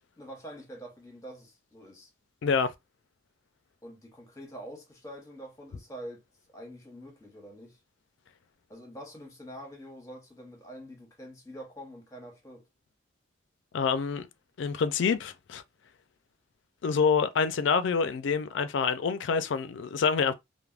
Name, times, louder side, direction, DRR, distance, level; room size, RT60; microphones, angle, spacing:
voice 1, 0.2-2.1 3.8-6.2 6.5-7.8 8.7-12.7, equal, 15° left, 0.8 m, -45 dB
voice 2, 2.4-2.7 13.7-14.3 14.6-15.6 16.8-20.3, left 5 dB, 70° left, 0.3 m, -27 dB
3.3 x 2.1 x 2.3 m
head